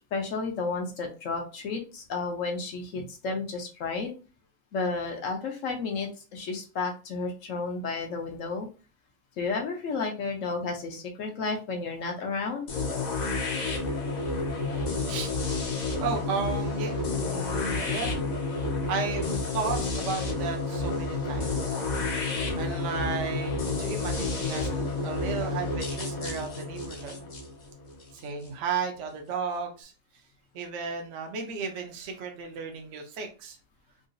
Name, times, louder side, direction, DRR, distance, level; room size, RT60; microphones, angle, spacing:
voice 1, 0.1-4.1 4.7-8.7 9.4-12.7, left 4 dB, 65° left, 2 dB, 1.1 m, -32 dB
sound 1, 12.7-28.5, left 3 dB, 45° left, 0.6 m, -30 dB
voice 2, 16.0-18.1 18.5-21.8 22.6-27.2 28.2-29.9 30.5-33.6, right 5 dB, 65° right, 3 dB, 0.9 m, -34 dB
3.8 x 2.3 x 2.5 m, 0.34 s
omnidirectional pair, 1.5 m